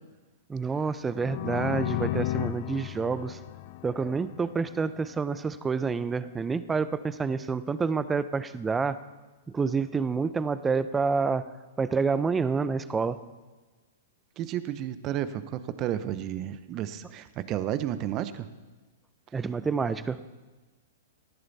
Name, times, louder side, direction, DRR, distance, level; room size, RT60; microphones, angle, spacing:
voice 1, 0.5-3.4 3.8-9.0 9.5-11.4 11.8-13.2 19.3-20.2, right 5 dB, 15° right, 14 dB, 0.7 m, -28 dB
sound 1, 1.1-4.8, left 15 dB, 50° left, 0.7 m, -33 dB
voice 2, 14.4-18.5, right 11 dB, 35° right, 13 dB, 1.0 m, -32 dB
18.5 x 14.0 x 4.2 m, 1.2 s
hypercardioid pair, 120°, 0 cm